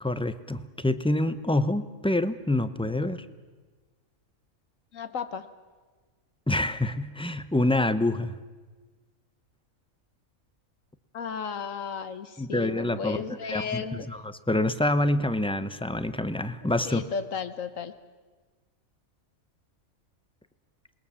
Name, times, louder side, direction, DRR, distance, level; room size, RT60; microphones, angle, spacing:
voice 1, 0.0-3.2 6.5-8.3 12.4-14.2 14.5-17.0, left 1 dB, 5° left, 12 dB, 0.6 m, -26 dB
voice 2, 4.9-5.5 11.1-14.1 16.6-17.9, left 6 dB, 70° left, 11 dB, 1.4 m, -34 dB
27.5 x 20.5 x 7.1 m, 1.4 s
omnidirectional pair, 1.4 m